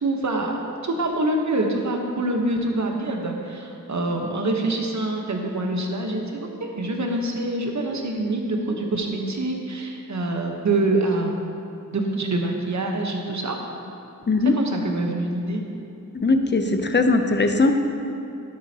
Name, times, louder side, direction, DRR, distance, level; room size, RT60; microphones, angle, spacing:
voice 1, 0.0-11.4 11.9-13.6 14.5-15.6, right 2 dB, 50° right, 2 dB, 1.1 m, -25 dB
voice 2, 14.3-14.6 16.1-17.7, left 3 dB, 30° left, 6 dB, 0.7 m, -19 dB
11.5 x 7.7 x 2.9 m, 2.7 s
wide cardioid pair, 70°, 36 cm